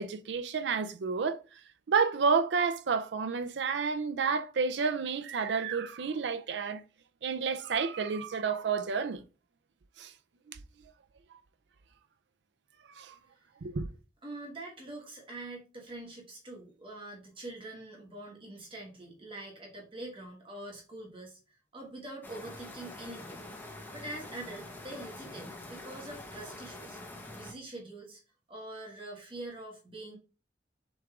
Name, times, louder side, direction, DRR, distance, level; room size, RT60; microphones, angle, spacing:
voice 1, 0.0-1.4 1.9-6.8 7.2-9.2 10.0-10.1 10.5-10.6 12.9-13.2 13.6-13.9, right 5 dB, 70° right, 0.4 m, -30 dB
voice 2, 14.2-23.6 23.9-28.2 28.5-30.2, right 2 dB, 30° right, 1.2 m, -44 dB
sound 1, 22.2-27.5, left 2 dB, 10° left, 0.8 m, -45 dB
6.2 x 3.6 x 2.4 m
head